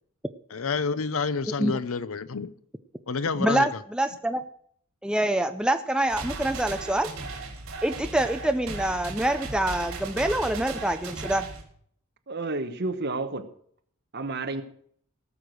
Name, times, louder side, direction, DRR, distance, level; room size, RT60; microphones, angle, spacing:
voice 1, 0.5-2.5 3.1-3.8, left 4 dB, 75° left, 15 dB, 0.7 m, -28 dB
voice 2, 3.4-4.4 5.0-7.1 7.8-11.5, right 1 dB, 5° right, 7 dB, 0.5 m, -26 dB
sound 1, 6.1-11.6, right 3 dB, 70° right, 4.1 m, -37 dB
voice 3, 12.3-13.5 14.1-14.6, right 3 dB, 50° right, 8 dB, 1.2 m, -30 dB
17.5 x 6.8 x 6.2 m, 0.63 s
head